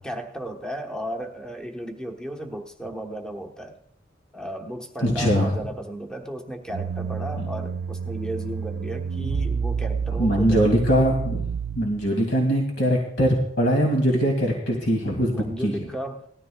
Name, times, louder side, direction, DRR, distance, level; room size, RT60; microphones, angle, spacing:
voice 1, 0.0-3.8 4.3-10.7 15.3-16.3, right 1 dB, 5° left, 2 dB, 1.1 m, -34 dB
voice 2, 5.0-5.5 10.2-11.5 11.8-15.7, equal, 70° left, 1 dB, 2.3 m, -22 dB
sound 1, 6.7-12.1, right 6 dB, 60° right, 0.4 m, -29 dB
19.0 x 13.5 x 2.3 m, 0.66 s
head